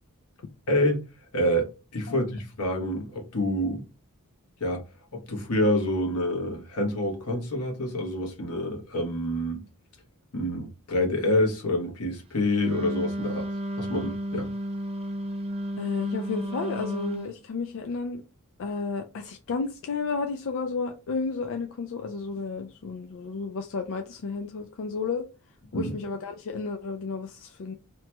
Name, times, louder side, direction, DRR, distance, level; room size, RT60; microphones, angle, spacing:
voice 1, 0.7-1.0 1.3-3.9 4.6-4.8 5.1-9.6 10.3-13.5 13.8-14.5 25.7-25.9, left 1 dB, 90° left, 1.0 m, -27 dB
Wind instrument woodwind instrument, 12.6-17.3, equal, 25° right, 0.4 m, -32 dB
voice 2, 15.8-18.2 18.6-25.2 25.7-27.7, left 4 dB, 60° left, 0.3 m, -32 dB
2.9 x 2.2 x 2.9 m
head